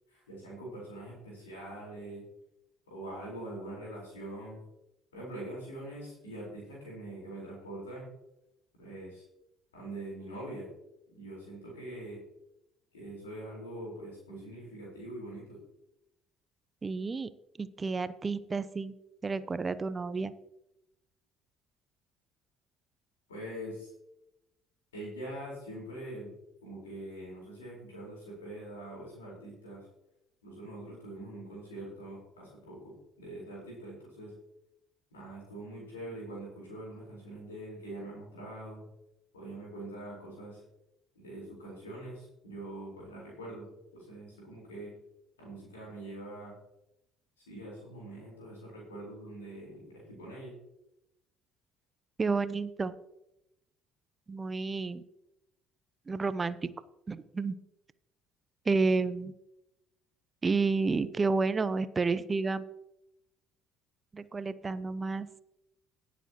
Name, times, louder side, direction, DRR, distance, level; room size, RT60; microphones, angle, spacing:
voice 1, 0.1-2.2 2.9-4.6 5.1-8.1 8.8-9.2 9.7-10.7 11.1-12.2 12.9-15.6 23.3-23.9 24.9-26.3 26.6-29.8 30.4-34.3 35.1-38.8 39.3-40.6 41.1-44.9 45.4-46.5 47.5-50.5, right 1 dB, 80° left, -5 dB, 4.4 m, -43 dB
voice 2, 16.8-17.3 17.6-19.0 19.2-20.3 52.2-53.0 54.3-55.0 56.1-56.7 57.1-57.5 58.7-59.3 60.4-62.6 64.1-65.3, right 4 dB, 25° right, 15 dB, 0.7 m, -30 dB
20.0 x 7.1 x 3.0 m, 0.86 s
figure-of-eight pair, 55°, 0 cm